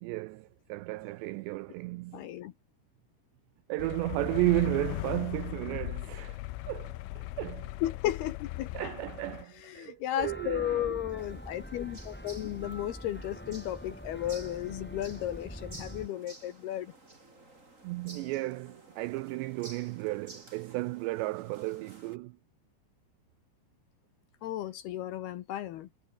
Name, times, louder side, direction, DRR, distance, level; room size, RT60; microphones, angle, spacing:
voice 1, 0.0-2.3 3.7-6.4 6.7-7.7 8.7-10.9 17.8-22.4, right 21 dB, 85° right, 2.5 m, -33 dB
voice 2, 2.1-2.5 7.8-8.7 9.6-16.9 24.4-25.9, left 12 dB, 70° left, 2.6 m, -34 dB
sound 1, 3.8-9.5, left 18 dB, 90° left, 3.5 m, -38 dB
sound 2, 10.2-16.1, equal, 5° left, 1.6 m, -44 dB
sound 3, 11.2-22.2, right 2 dB, 15° right, 4.9 m, -53 dB
omnidirectional pair, 5.6 m